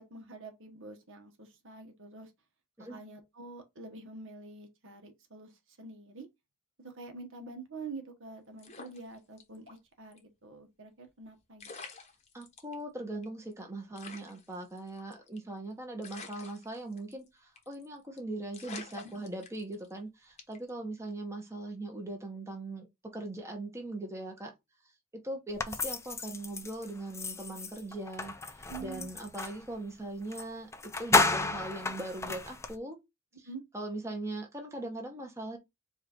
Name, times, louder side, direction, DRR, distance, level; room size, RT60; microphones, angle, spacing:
voice 1, 0.0-2.3 2.8-6.3 6.8-11.7 19.0-19.1 28.7-29.1 33.4-33.6, right 3 dB, 60° right, 1.2 m, -46 dB
sound 1, 8.6-9.8 10.1-10.2 11.2-11.3 11.6-12.7 13.2-13.3 13.5-13.6 14.0-15.5 16.0-17.3 17.6-17.9 18.2-18.3 18.5-19.9 20.4-20.7, left 4 dB, 30° left, 1.0 m, -48 dB
voice 2, 12.3-22.9 23.1-24.5 25.2-28.3 28.8-33.0 33.4-33.5 33.7-35.6, right 2 dB, 10° right, 1.0 m, -40 dB
sound 2, 25.6-29.6 30.3-30.4 30.7-32.8, left 3 dB, 10° left, 0.5 m, -32 dB
4.8 x 2.5 x 4.3 m
head